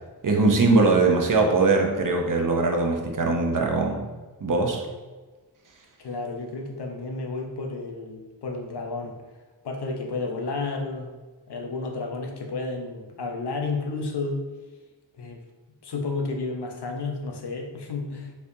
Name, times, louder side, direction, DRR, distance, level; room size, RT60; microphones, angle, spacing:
voice 1, 0.2-4.0 4.4-4.8, right 3 dB, 45° right, 2 dB, 0.8 m, -21 dB
voice 2, 6.0-9.2 9.6-11.1 11.5-14.4 15.2-15.4 15.8-18.3, left 3 dB, 65° left, 2 dB, 0.8 m, -31 dB
4.4 x 3.4 x 2.7 m, 1.3 s
cardioid pair, 70°, 44 cm